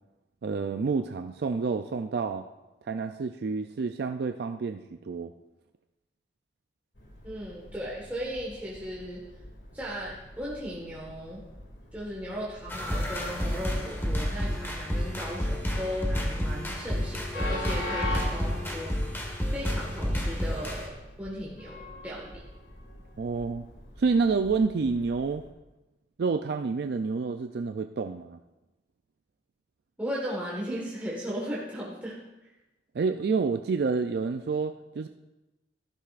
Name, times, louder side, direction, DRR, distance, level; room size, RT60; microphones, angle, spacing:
voice 1, 0.4-2.4 2.9-5.3 23.2-23.7 24.0-25.4 26.2-28.4 32.9-35.1, right 4 dB, 65° right, 7 dB, 0.4 m, -28 dB
Train, 6.9-25.5, left 1 dB, 85° left, 2.4 m, -43 dB
voice 2, 7.2-9.2 9.7-11.4 11.9-19.2 19.5-22.4 30.0-32.5, equal, 10° right, -6 dB, 1.5 m, -37 dB
sound 1, 12.7-20.9, equal, 15° left, 1.3 m, -30 dB
14.0 x 11.5 x 2.5 m, 1.0 s
head